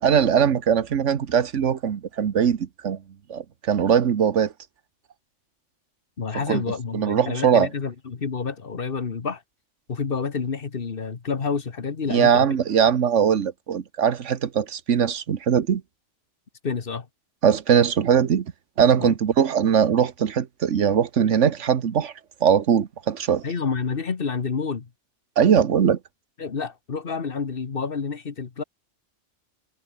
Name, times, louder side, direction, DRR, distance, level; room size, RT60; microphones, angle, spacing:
voice 1, 0.0-3.0 3.3-4.5 6.5-6.6 6.9-7.7 12.1-15.8 17.4-18.5 18.8-22.1 22.4-23.5 25.4-26.0, right 8 dB, 80° right, 1.5 m, -20 dB
voice 2, 6.2-9.4 9.9-12.5 16.6-17.1 19.0-19.1 23.4-24.9 26.4-28.6, left 5 dB, 50° left, 1.5 m, -29 dB
omnidirectional pair, 1.2 m